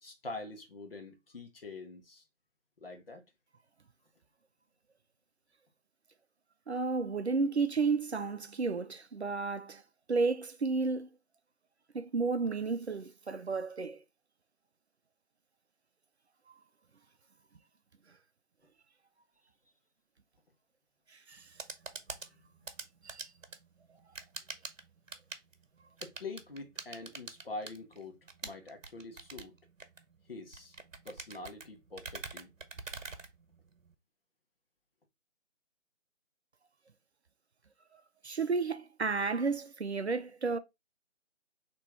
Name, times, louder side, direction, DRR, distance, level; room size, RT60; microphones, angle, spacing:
voice 1, 0.0-2.2 2.8-3.2 26.0-29.5 30.3-30.7 31.0-32.5, left 3 dB, 45° left, 1.3 m, -45 dB
voice 2, 6.7-9.8 10.1-11.1 11.9-14.0 21.1-21.5 23.0-23.3 37.9-40.6, right 4 dB, 55° right, 0.6 m, -32 dB
sound 1, 21.3-34.0, right 4 dB, 75° right, 1.0 m, -46 dB
4.6 x 3.0 x 3.5 m
figure-of-eight pair, 165°, 39 cm